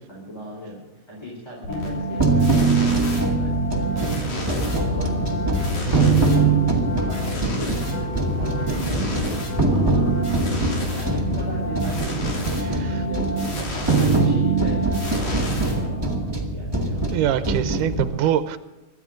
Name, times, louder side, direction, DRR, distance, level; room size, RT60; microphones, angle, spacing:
voice 1, 0.0-6.6 7.1-9.3 9.7-10.1 10.9-13.2 13.6-14.8 15.1-16.1 16.4-17.6, left 1 dB, 5° left, -4 dB, 4.0 m, -38 dB
sound 1, 1.6-16.3, equal, 65° left, 4.7 m, -30 dB
sound 2, 2.2-18.0, right 3 dB, 15° right, 0.9 m, -22 dB
voice 2, 17.1-18.6, right 10 dB, 80° right, 11 dB, 2.4 m, -23 dB
26.0 x 12.0 x 3.9 m, 1.1 s
omnidirectional pair, 3.7 m